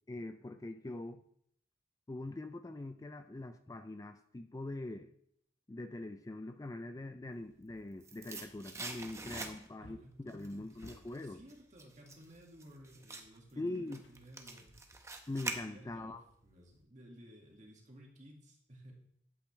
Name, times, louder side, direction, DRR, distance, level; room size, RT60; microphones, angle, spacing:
voice 1, 0.1-1.2 2.1-5.1 5.7-11.4 13.6-14.0 15.3-16.2, left 2 dB, 20° left, 8 dB, 0.4 m, -43 dB
sound 1, 7.5-9.9 10.3-16.1 16.5-16.6, right 3 dB, 15° right, 0.9 m, -45 dB
voice 2, 9.4-10.8 11.2-14.8 15.7-18.9, equal, 40° right, 0 dB, 2.1 m, -56 dB
Wood, 9.5-11.3 14.0-14.8 15.1-15.2, left 1 dB, 80° left, 1.2 m, -59 dB
11.5 x 8.3 x 3.3 m, 0.70 s
head